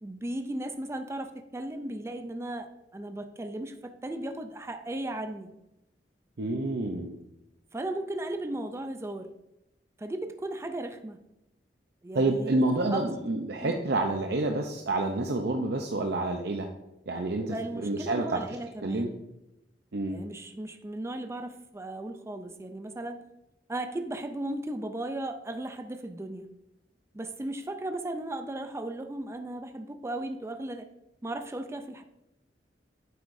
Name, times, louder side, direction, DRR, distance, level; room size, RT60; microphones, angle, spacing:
voice 1, 0.0-5.5 7.7-9.3 10.0-11.2 12.0-12.6 12.9-13.1 13.6-13.8 17.5-19.2 20.1-23.2 23.7-26.5 27.1-30.9 31.2-32.0, right 1 dB, 15° right, 0.4 m, -36 dB
voice 2, 6.4-7.2 12.1-16.7 17.1-18.4 18.8-19.1 19.9-20.2, right 2 dB, 65° right, 0.6 m, -28 dB
9.3 x 7.8 x 2.6 m
head